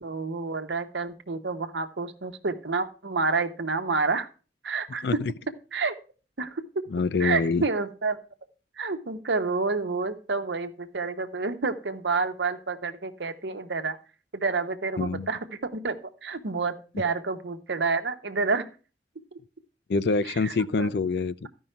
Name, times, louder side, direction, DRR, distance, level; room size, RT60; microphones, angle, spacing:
voice 1, 0.0-4.3 4.6-5.1 5.7-5.9 6.4-6.6 7.2-8.2 8.8-14.0 14.3-15.4 15.7-15.9 16.2-18.7 20.4-20.9, right 4 dB, 75° right, 1.0 m, -29 dB
voice 2, 6.9-7.7 15.0-15.3 19.9-21.5, left 4 dB, 65° left, 0.4 m, -26 dB
13.5 x 5.5 x 4.4 m
head